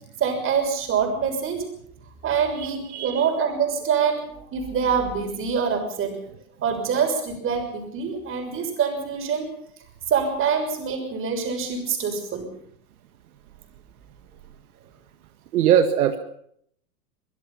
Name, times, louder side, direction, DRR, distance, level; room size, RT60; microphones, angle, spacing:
voice 1, 0.2-1.7 2.2-6.2 6.6-9.5 10.1-12.5, right 6 dB, 30° right, 5 dB, 6.5 m, -25 dB
voice 2, 2.9-3.3 15.5-16.2, right 9 dB, 70° right, 7 dB, 1.9 m, -20 dB
24.0 x 20.5 x 5.7 m, 0.68 s
hypercardioid pair, 135°, 45 cm